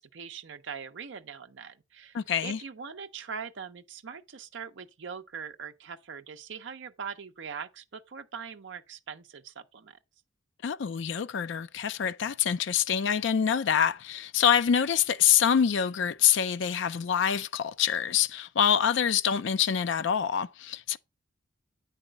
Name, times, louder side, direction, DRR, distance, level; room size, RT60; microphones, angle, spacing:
voice 1, 0.0-10.0, right 6 dB, 60° right, 0.6 m, -42 dB
voice 2, 2.1-2.6 10.6-21.0, left 8 dB, 65° left, 0.4 m, -26 dB
8.8 x 4.1 x 5.1 m
head